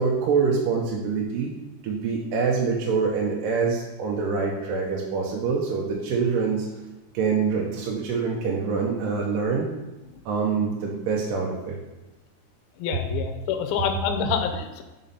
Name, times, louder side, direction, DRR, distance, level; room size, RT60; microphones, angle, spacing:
voice 1, 0.0-1.5 1.8-6.7 7.1-9.7 10.3-11.8, right 5 dB, 75° right, -2 dB, 2.0 m, -25 dB
voice 2, 12.8-14.8, left 6 dB, 80° left, 7 dB, 2.5 m, -27 dB
5.5 x 5.1 x 5.6 m, 1.1 s
omnidirectional pair, 4.5 m